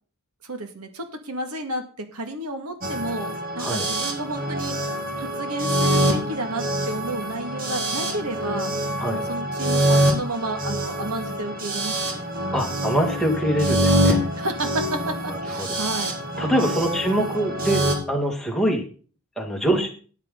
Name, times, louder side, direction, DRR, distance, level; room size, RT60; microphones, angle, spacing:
voice 1, 0.4-4.8 5.2-8.7 9.1-12.3 14.4-16.1 16.6-16.9 19.7-19.9, right 1 dB, 85° right, 6 dB, 2.0 m, -31 dB
sound 1, 2.8-17.9, right 1 dB, 40° right, 2.1 m, -25 dB
voice 2, 12.5-14.2 15.3-15.7 16.4-18.9 19.4-19.9, right 1 dB, ahead, 0 dB, 2.0 m, -24 dB
13.5 x 8.9 x 3.9 m, 0.41 s
head